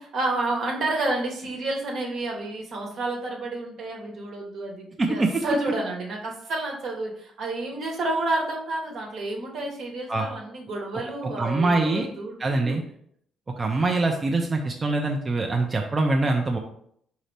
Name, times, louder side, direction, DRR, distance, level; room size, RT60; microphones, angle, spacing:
voice 1, 0.0-12.8, right 2 dB, 70° right, -1 dB, 1.1 m, -30 dB
voice 2, 5.0-5.3 10.1-10.3 11.4-12.1 12.4-12.8 13.6-16.6, right 2 dB, 35° right, 2 dB, 0.5 m, -23 dB
4.1 x 2.7 x 3.3 m, 0.67 s
supercardioid pair, 60°, 0 cm